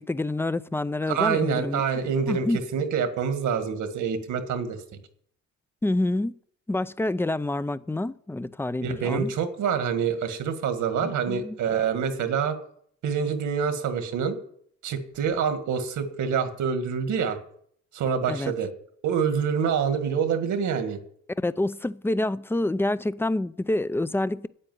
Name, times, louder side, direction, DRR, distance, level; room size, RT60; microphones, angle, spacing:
voice 1, 0.0-1.8 2.3-2.6 5.8-6.4 6.7-9.3 11.0-11.6 18.3-18.5 21.4-24.5, left 2 dB, 10° left, 0.4 m, -27 dB
voice 2, 1.1-4.8 8.8-12.6 13.0-14.4 14.8-17.4 17.9-18.7 19.0-21.0, right 7 dB, 75° right, 1.8 m, -26 dB
8.8 x 8.5 x 9.2 m
cardioid pair, 90°, 30 cm